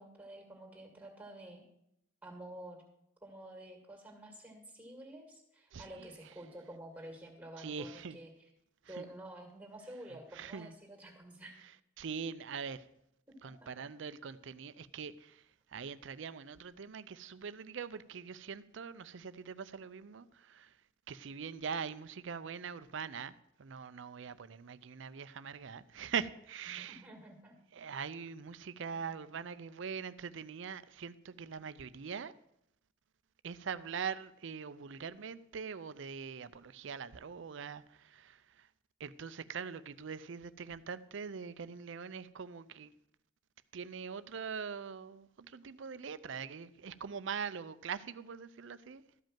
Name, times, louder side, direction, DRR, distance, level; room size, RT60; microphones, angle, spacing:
voice 1, 0.0-1.7 2.2-2.8 3.2-8.3 8.9-11.6 13.4-13.7 26.7-27.5 28.9-29.0, right 1 dB, 10° right, 2.1 m, -50 dB
voice 2, 5.7-6.3 7.6-8.2 8.8-9.0 10.1-10.7 11.6-12.9 13.4-20.8 21.1-23.3 23.6-27.1 27.7-32.3 33.4-38.7 39.0-42.9 43.7-49.0, right 6 dB, 65° right, 0.5 m, -43 dB
13.0 x 5.2 x 7.4 m
head